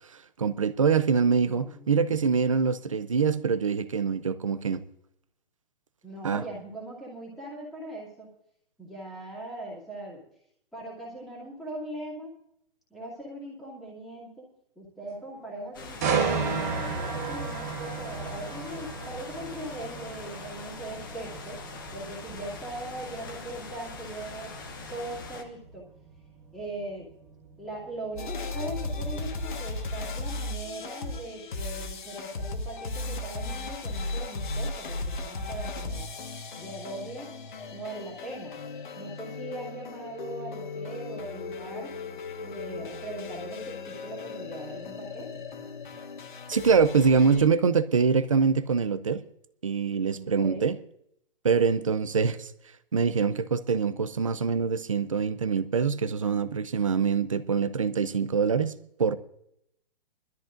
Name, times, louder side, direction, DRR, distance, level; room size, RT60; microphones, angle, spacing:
voice 1, 0.4-4.8 6.2-6.4 46.5-49.2 49.6-50.8 51.4-52.5 52.9-59.2, right 5 dB, 35° right, 0.6 m, -24 dB
voice 2, 1.4-2.0 6.0-8.3 8.8-10.2 10.7-12.3 12.9-14.5 14.8-21.6 21.9-24.5 24.9-25.9 26.5-27.1 27.6-36.0 36.6-37.3 37.7-38.6 38.9-42.0 42.4-45.4 50.1-50.7, right 1 dB, ahead, 2.4 m, -40 dB
sound 1, 15.7-25.4, left 3 dB, 20° left, 1.0 m, -42 dB
sound 2, 16.0-29.8 30.3-30.5, right 5 dB, 15° right, 1.0 m, -35 dB
sound 3, 28.2-47.5, left 3 dB, 50° left, 1.5 m, -36 dB
24.0 x 13.0 x 2.5 m
hypercardioid pair, 180°, 30 cm